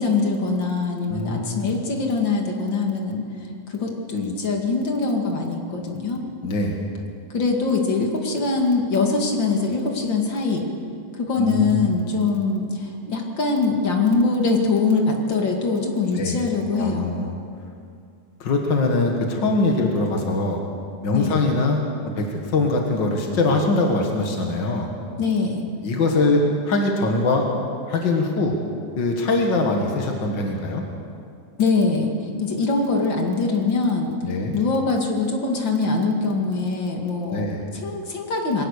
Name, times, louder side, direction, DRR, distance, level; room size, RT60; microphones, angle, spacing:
voice 1, 0.0-3.2 3.7-6.2 7.3-10.7 11.2-17.1 21.1-21.3 25.2-25.6 31.6-34.1 34.5-37.5 37.8-38.6, left 4 dB, 35° left, 1 dB, 2.1 m, -23 dB
voice 2, 1.1-1.7 6.4-6.8 11.4-12.0 16.1-16.4 16.7-17.3 18.4-20.6 21.0-24.9 25.8-27.5 27.9-28.6 29.0-30.8 34.2-34.6 37.3-37.6, left 2 dB, 65° left, 1 dB, 1.1 m, -22 dB
22.0 x 18.5 x 6.7 m, 2.4 s
omnidirectional pair, 4.9 m